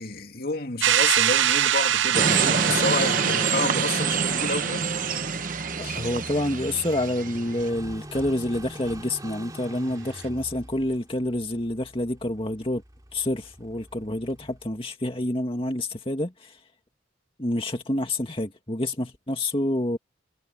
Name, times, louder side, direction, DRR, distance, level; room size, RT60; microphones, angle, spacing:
voice 1, 0.0-4.9 5.8-6.0, left 3 dB, 50° left, 2.8 m, -30 dB
sound 1, 0.8-5.6, right 11 dB, 75° right, 0.5 m, -25 dB
sound 2, 2.1-7.7, right 5 dB, 45° right, 1.1 m, -26 dB
Car passing by / Idling, 4.1-14.7, right 1 dB, 20° right, 3.7 m, -45 dB
voice 2, 5.8-12.8 13.1-16.6 17.4-20.0, left 1 dB, 30° left, 2.1 m, -28 dB
head